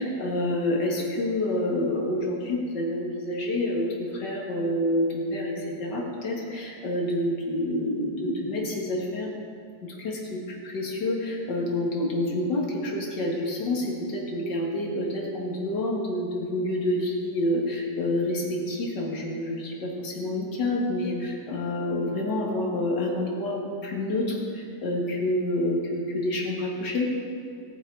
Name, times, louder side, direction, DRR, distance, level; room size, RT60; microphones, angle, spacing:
voice 1, 0.0-9.3 9.8-27.1, left 1 dB, 90° left, -2 dB, 2.6 m, -28 dB
18.0 x 7.1 x 4.8 m, 2.4 s
omnidirectional pair, 1.8 m